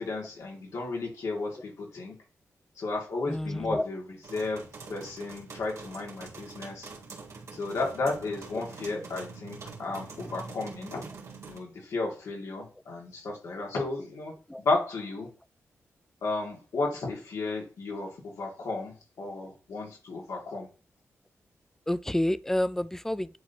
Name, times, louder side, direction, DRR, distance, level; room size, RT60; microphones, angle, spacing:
voice 1, 0.0-2.1 2.8-4.0 4.3-6.9 7.5-11.0 11.4-14.3 14.6-15.3 16.2-20.7, left 3 dB, 70° left, 2.3 m, -33 dB
voice 2, 3.3-3.9 14.5-14.6 21.9-23.4, left 1 dB, 5° left, 0.4 m, -29 dB
sound 1, 4.2-11.6, right 4 dB, 65° right, 1.6 m, -45 dB
9.3 x 4.2 x 2.9 m
cardioid pair, 70°, 5 cm